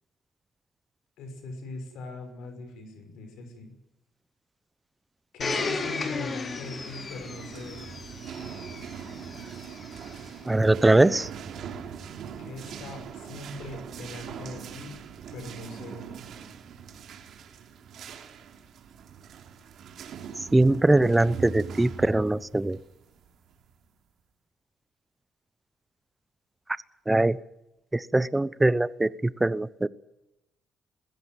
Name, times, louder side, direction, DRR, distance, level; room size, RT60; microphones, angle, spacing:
voice 1, 1.2-3.7 5.3-7.9 12.4-15.0 15.3-16.1, left 2 dB, 85° left, 6 dB, 5.9 m, -41 dB
Domestic sounds home sounds, 5.4-10.2 11.0-11.1, left 4 dB, 40° left, 3.7 m, -35 dB
sound 1, 6.5-23.9, right 6 dB, 70° right, 3.1 m, -42 dB
voice 2, 10.4-11.3 20.5-22.8 27.1-27.4 27.9-29.9, right 2 dB, 15° right, 18 dB, 0.9 m, -22 dB
21.0 x 16.0 x 9.2 m, 0.92 s
cardioid pair, 90°, 0 cm